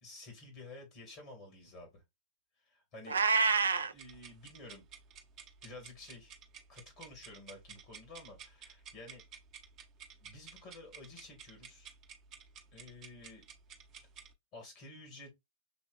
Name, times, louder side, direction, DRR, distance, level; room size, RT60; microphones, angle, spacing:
voice 1, 0.0-2.0 2.6-3.2 3.9-4.9 5.6-6.3 6.7-9.2 10.2-12.0 12.7-13.5 14.5-15.3, left 2 dB, 35° left, 2.3 m, -51 dB
Meow, 3.1-3.9, right 5 dB, 75° right, 0.6 m, -27 dB
sound 1, 4.0-14.3, right 7 dB, 30° right, 1.5 m, -53 dB
7.0 x 2.9 x 2.6 m
figure-of-eight pair, 110°, 0 cm